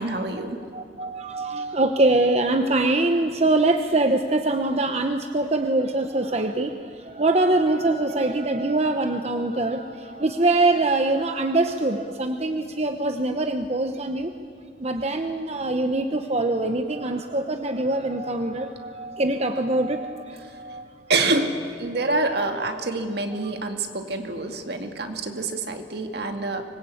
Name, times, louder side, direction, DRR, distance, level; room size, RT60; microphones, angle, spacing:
voice 1, 0.0-0.6 21.1-26.6, right 2 dB, 60° right, 5 dB, 2.3 m, -26 dB
voice 2, 0.7-14.3 14.8-20.9 23.4-23.5, right 2 dB, 35° right, 6 dB, 1.0 m, -23 dB
25.0 x 21.0 x 8.7 m, 2.3 s
head